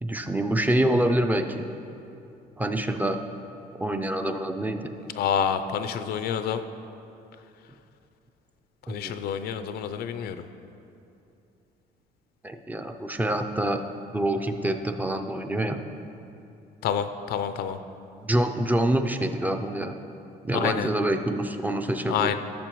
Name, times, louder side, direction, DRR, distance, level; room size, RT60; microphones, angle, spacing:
voice 1, 0.0-1.7 2.6-3.2 3.8-4.9 8.9-9.1 12.4-13.8 14.1-15.8 18.2-20.0 20.4-22.4, right 1 dB, 10° right, 6 dB, 0.5 m, -26 dB
voice 2, 5.1-6.6 8.8-10.4 16.8-17.8 20.5-20.9 22.1-22.4, left 8 dB, 70° left, 10 dB, 0.4 m, -28 dB
13.5 x 6.8 x 3.0 m, 2.7 s
cardioid pair, 110°, 17 cm